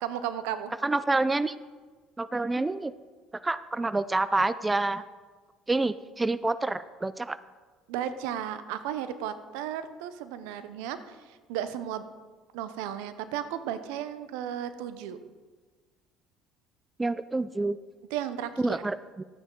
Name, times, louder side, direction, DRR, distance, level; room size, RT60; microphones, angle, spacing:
voice 1, 0.0-0.7 7.9-12.0 12.5-15.2 18.1-18.8, right 10 dB, 80° right, 12 dB, 0.7 m, -34 dB
voice 2, 0.8-1.5 2.2-2.9 3.4-5.0 5.7-7.4 17.0-17.8 18.6-19.2, right 2 dB, 15° right, 15 dB, 0.4 m, -27 dB
12.0 x 9.0 x 3.8 m, 1.4 s
supercardioid pair, 80°, 0 cm